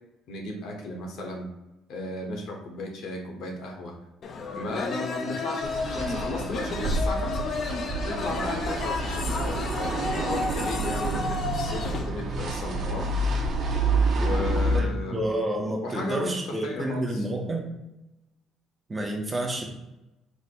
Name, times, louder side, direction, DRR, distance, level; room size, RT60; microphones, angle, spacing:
voice 1, 0.3-1.5 1.9-3.9 4.5-7.5 8.0-13.1 14.1-15.3 15.8-17.2, left 2 dB, 65° left, 1 dB, 1.0 m, -35 dB
sound 1, 4.2-12.1, left 4 dB, 40° left, 0.4 m, -32 dB
sound 2, 5.6-14.8, right 2 dB, 45° right, 0.8 m, -28 dB
voice 2, 14.7-17.7 18.9-19.6, right 1 dB, 15° right, 1 dB, 0.6 m, -29 dB
4.7 x 2.0 x 4.2 m, 0.96 s
cardioid pair, 155°, 0 cm